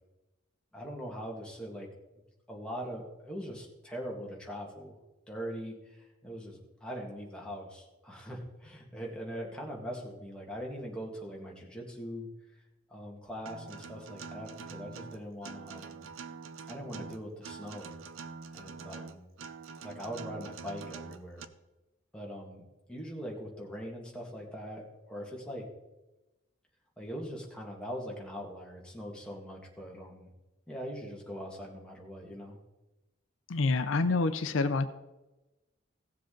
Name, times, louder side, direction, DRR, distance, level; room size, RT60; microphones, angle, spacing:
voice 1, 0.7-1.9 2.5-5.0 5.3-12.3 12.9-16.1 16.7-17.9 18.5-19.3 19.8-21.5 22.1-25.7 27.0-30.3 30.7-32.6, equal, 5° left, -2 dB, 1.9 m, -41 dB
Acoustic guitar, 13.5-21.4, right 5 dB, 80° right, 0.6 m, -45 dB
voice 2, 33.5-34.9, left 3 dB, 75° left, 11 dB, 0.6 m, -27 dB
16.5 x 7.5 x 3.9 m, 1.1 s
head